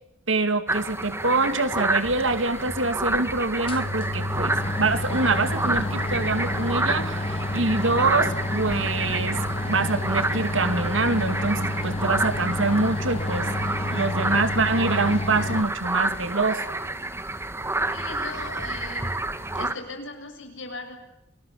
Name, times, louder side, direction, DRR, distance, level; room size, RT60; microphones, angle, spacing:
voice 1, 0.3-9.4 9.6-13.5 13.9-16.6, right 3 dB, 85° right, 10 dB, 2.4 m, -25 dB
sound 1, 0.7-19.7, right 2 dB, 15° right, 1.5 m, -29 dB
sound 2, 2.5-2.6 3.1-3.2 3.5-15.6, left 1 dB, 30° left, 1.5 m, -29 dB
voice 2, 17.9-19.2 19.5-21.0, left 3 dB, 75° left, 5 dB, 7.0 m, -38 dB
28.5 x 20.5 x 8.5 m, 0.87 s
head